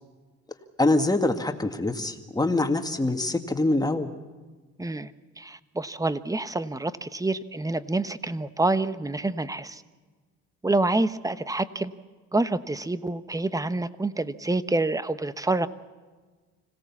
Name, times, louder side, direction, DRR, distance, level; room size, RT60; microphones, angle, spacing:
voice 1, 0.8-4.1, left 2 dB, 15° left, 6 dB, 1.9 m, -24 dB
voice 2, 4.8-5.1 5.4-9.8 10.6-11.9 12.3-15.7, right 2 dB, 10° right, 13 dB, 1.0 m, -27 dB
25.5 x 17.0 x 7.2 m, 1.4 s
cardioid pair, 90°, 30 cm